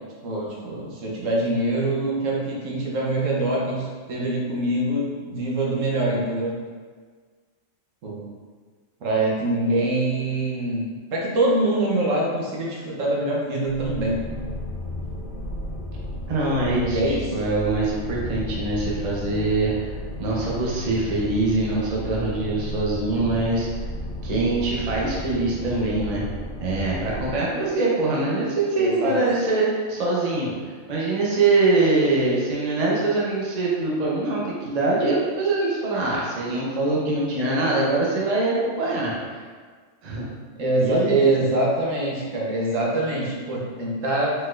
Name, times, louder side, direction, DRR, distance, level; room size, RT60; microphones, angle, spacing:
voice 1, 0.2-6.6 8.0-8.2 9.0-14.2 16.9-17.3 28.8-29.2 40.6-44.3, right 2 dB, 70° right, -4 dB, 1.2 m, -24 dB
sound 1, 13.7-27.3, left 1 dB, 50° left, 0.7 m, -33 dB
voice 2, 16.3-19.9 20.2-23.7 24.2-26.2 26.6-29.6 29.9-30.5 30.9-39.4 40.0-40.3 40.8-41.3, right 2 dB, 35° right, -4 dB, 0.8 m, -23 dB
4.6 x 4.1 x 2.5 m, 1.6 s
omnidirectional pair, 1.4 m